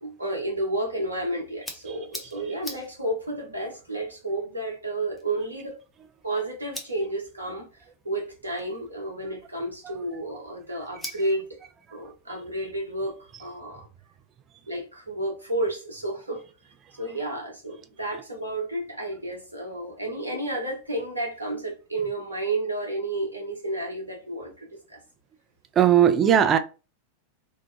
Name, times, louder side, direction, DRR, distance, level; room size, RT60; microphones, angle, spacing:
voice 1, 0.0-5.8 6.2-7.7 8.0-11.6 11.9-13.9 14.7-16.4 17.0-25.0, right 1 dB, 80° right, 0.8 m, -31 dB
sound 1, 1.0-13.3, left 1 dB, 5° left, 0.6 m, -47 dB
voice 2, 25.8-26.6, right 9 dB, 25° right, 0.3 m, -18 dB
2.7 x 2.1 x 2.5 m
figure-of-eight pair, 90°, 0 cm